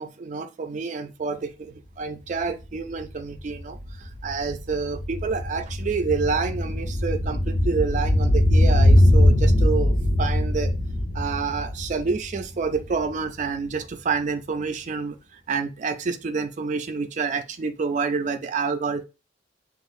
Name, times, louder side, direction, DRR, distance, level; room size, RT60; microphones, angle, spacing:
voice 1, 0.0-10.7 11.1-19.0, right 4 dB, 40° right, 0.4 m, -28 dB
sound 1, 2.4-2.5 2.8-13.1 13.4-13.5, left 1 dB, 75° left, 1.1 m, -21 dB
6.1 x 2.4 x 2.6 m
head